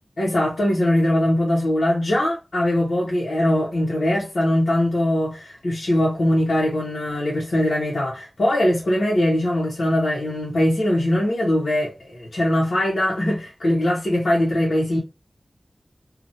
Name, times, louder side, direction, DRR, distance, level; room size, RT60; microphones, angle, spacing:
voice 1, 0.2-15.0, left 1 dB, 80° left, 1.0 m, -21 dB
2.9 x 2.4 x 2.6 m
wide cardioid pair, 80°, 0 cm